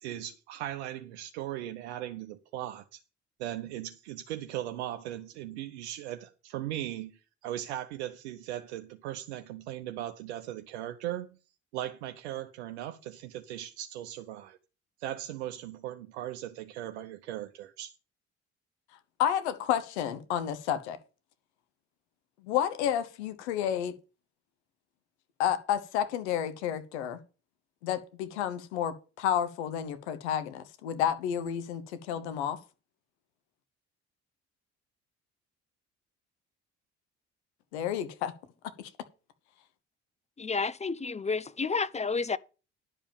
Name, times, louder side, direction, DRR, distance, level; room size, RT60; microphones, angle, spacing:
voice 1, 0.0-3.0 3.4-11.3 11.7-14.6 15.0-17.9, right 12 dB, 90° right, 0.7 m, -38 dB
voice 2, 19.2-21.0 22.4-24.0 25.4-27.2 27.8-31.8 32.1-32.6 37.7-38.3 38.8-38.9, left 9 dB, 90° left, 1.1 m, -30 dB
voice 3, 40.4-42.4, left 4 dB, 20° left, 0.7 m, -30 dB
11.0 x 5.3 x 7.1 m
hypercardioid pair, 55°, 33 cm